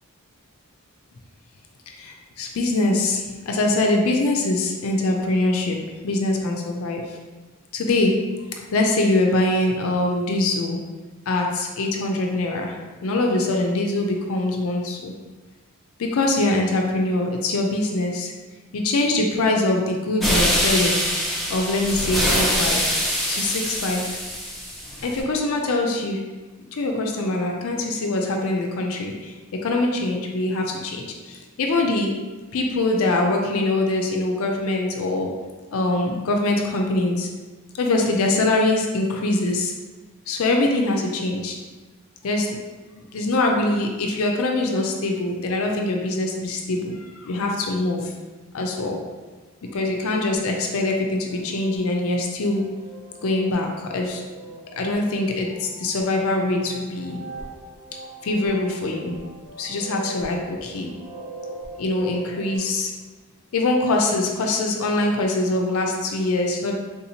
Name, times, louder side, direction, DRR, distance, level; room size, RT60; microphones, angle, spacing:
voice 1, 1.9-5.8 6.0-7.2 7.7-8.2 8.7-10.8 11.3-12.7 13.0-15.1 16.0-18.3 18.7-21.0 21.5-22.9 23.3-24.2 25.0-26.2 26.7-29.3 29.6-32.1 32.5-35.3 35.7-37.3 37.7-39.7 40.3-41.6 42.2-42.5 43.1-48.1 48.5-49.0 49.7-52.6 53.2-54.2 54.8-57.2 58.2-59.2 59.6-60.9 61.8-62.9 63.5-66.7, left 2 dB, 65° left, 1 dB, 0.4 m, -23 dB
sound 1, 20.2-25.2, equal, ahead, 0.5 m, -24 dB
sound 2, 49.6-62.6, right 2 dB, 75° right, 0.7 m, -42 dB
3.6 x 2.7 x 2.8 m, 1.3 s
head